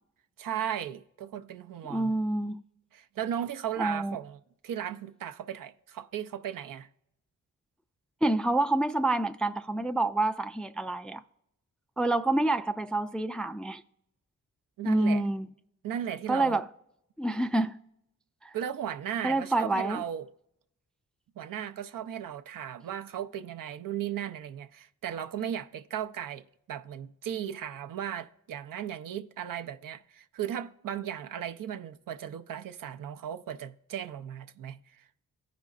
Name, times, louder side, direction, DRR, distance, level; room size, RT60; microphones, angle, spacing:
voice 1, 0.4-2.1 2.9-4.4 4.6-6.9 14.8-15.2 15.8-16.6 18.5-20.3 21.4-35.2, right 9 dB, 70° right, 0.5 m, -36 dB
voice 2, 1.9-2.6 3.8-4.2 8.2-11.2 12.0-13.8 14.8-15.5 16.3-16.7 17.2-17.8 18.4-18.5 19.2-20.0, right 2 dB, 5° left, 0.3 m, -27 dB
14.5 x 5.1 x 2.4 m
cardioid pair, 55°, 34 cm